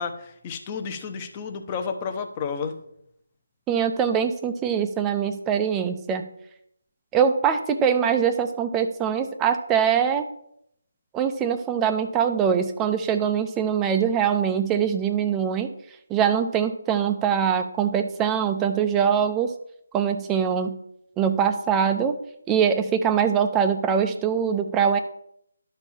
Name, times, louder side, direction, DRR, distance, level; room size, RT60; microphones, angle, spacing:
voice 1, 0.0-2.8, left 6 dB, 20° left, 5 dB, 0.9 m, -31 dB
voice 2, 3.7-6.2 7.1-10.2 11.1-15.7 16.1-19.5 19.9-20.7 21.2-22.1 22.5-25.0, right 7 dB, 10° right, 7 dB, 0.6 m, -23 dB
11.5 x 4.5 x 7.2 m, 0.74 s
figure-of-eight pair, 165°, 0 cm